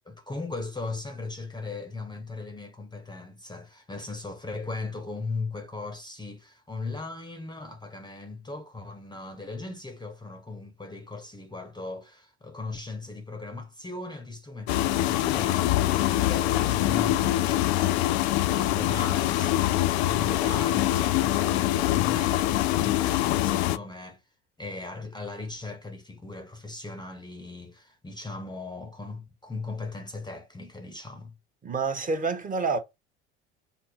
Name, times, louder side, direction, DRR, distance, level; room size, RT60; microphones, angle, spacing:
voice 1, 0.1-18.2 18.5-24.2 24.6-31.4, left 3 dB, 15° left, 0.8 m, -38 dB
sound 1, 14.7-23.8, left 15 dB, 70° left, 0.5 m, -24 dB
voice 2, 31.6-32.8, right 4 dB, 25° right, 1.1 m, -28 dB
3.6 x 2.0 x 4.2 m
hypercardioid pair, 70°, 33 cm